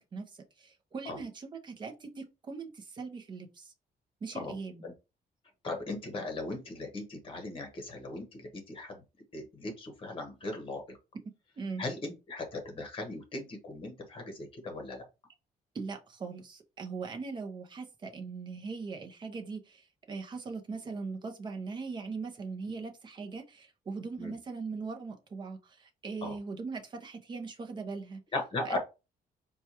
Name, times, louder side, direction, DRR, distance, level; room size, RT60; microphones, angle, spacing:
voice 1, 0.0-3.7 4.2-4.8 11.6-11.8 15.7-28.2 28.6-28.8, right 4 dB, 30° right, 0.6 m, -40 dB
voice 2, 5.6-8.9 9.3-11.0 11.8-15.0 24.2-24.3 26.2-26.3 28.3-28.8, left 2 dB, 35° left, 1.1 m, -38 dB
4.4 x 2.3 x 2.8 m
cardioid pair, 170°, 15 cm